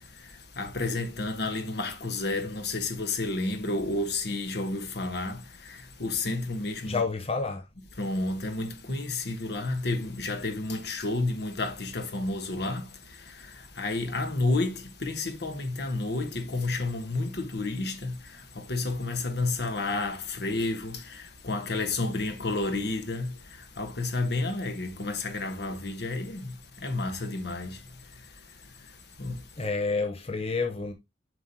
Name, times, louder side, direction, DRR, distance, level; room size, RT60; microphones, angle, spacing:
voice 1, 0.6-7.0 8.0-12.9 13.8-18.2 18.5-23.3 23.8-27.8 29.2-29.4, left 2 dB, 65° left, 1.3 m, -31 dB
voice 2, 6.8-7.6 29.6-30.9, left 4 dB, 35° left, 0.7 m, -29 dB
7.4 x 5.2 x 2.8 m
head